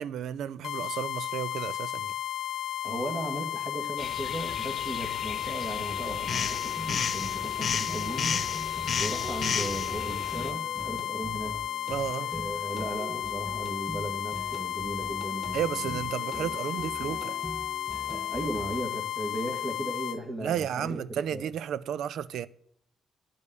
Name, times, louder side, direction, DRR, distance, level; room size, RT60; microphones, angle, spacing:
voice 1, 0.0-2.1 11.9-12.3 15.5-17.4 20.4-22.5, right 9 dB, 75° right, 0.5 m, -33 dB
sound 1, 0.6-20.2, left 12 dB, 75° left, 0.9 m, -34 dB
voice 2, 2.8-8.4 9.0-11.6 12.3-16.0 18.1-21.5, right 1 dB, 35° right, 1.9 m, -37 dB
sound 2, 4.0-10.5, left 6 dB, 55° left, 0.9 m, -33 dB
sound 3, 5.9-18.8, right 1 dB, 10° right, 0.4 m, -42 dB
10.5 x 5.2 x 8.2 m
cardioid pair, 90°, 0 cm